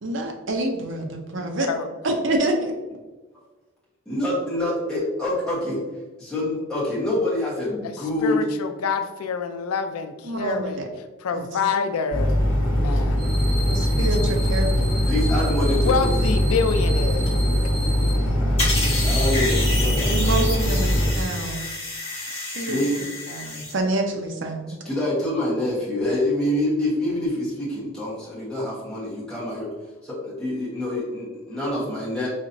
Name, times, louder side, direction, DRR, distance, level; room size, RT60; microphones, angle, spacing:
voice 1, 0.0-1.7 2.0-2.7 10.2-10.9 11.3-11.5 13.7-14.7 20.1-21.6 22.3-22.8 23.3-24.7, right 2 dB, 55° right, 3 dB, 0.6 m, -27 dB
voice 2, 1.4-1.9 7.8-7.9 8.2-10.9 11.2-12.3 12.7-13.2 15.7-17.3, left 5 dB, 90° left, 8 dB, 0.4 m, -26 dB
voice 3, 4.0-5.8 6.2-8.4 15.1-16.1 18.1-20.1 22.7-23.0 24.8-29.7 30.0-32.3, left 1 dB, 5° left, -10 dB, 1.2 m, -26 dB
sound 1, 12.1-21.1, equal, 60° left, 0.8 m, -21 dB
sound 2, 13.2-18.1, equal, 35° right, 1.2 m, -35 dB
sound 3, 18.6-23.7, left 2 dB, 25° left, 1.4 m, -29 dB
4.1 x 2.9 x 2.6 m, 1.2 s
head